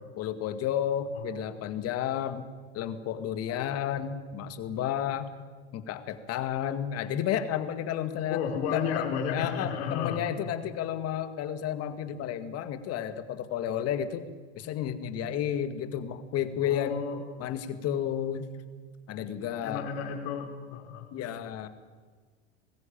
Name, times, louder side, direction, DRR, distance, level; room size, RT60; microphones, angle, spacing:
voice 1, 0.2-2.5 2.7-5.4 5.7-8.4 8.7-14.3 14.6-17.0 17.4-18.5 19.1-19.9 21.1-21.7, left 10 dB, 45° left, 10 dB, 2.0 m, -32 dB
voice 2, 8.3-10.3 16.6-17.2 19.4-21.1, left 7 dB, 65° left, 3 dB, 4.3 m, -33 dB
20.5 x 15.5 x 9.0 m, 1.5 s
hypercardioid pair, 95°, 33 cm